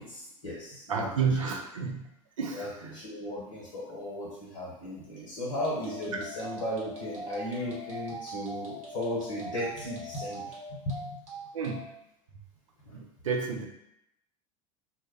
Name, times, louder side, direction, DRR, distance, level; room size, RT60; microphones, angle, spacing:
voice 1, 0.0-1.6 2.4-11.2 12.8-12.9, left 1 dB, 75° left, -6 dB, 0.8 m, -36 dB
voice 2, 0.9-2.0 2.4-2.9 11.5-11.9 12.9-13.7, right 5 dB, 70° right, 1 dB, 0.4 m, -31 dB
sound 1, 5.6-11.8, right 1 dB, 45° right, 1.0 m, -41 dB
2.1 x 2.0 x 3.1 m, 0.82 s
figure-of-eight pair, 75°, 17 cm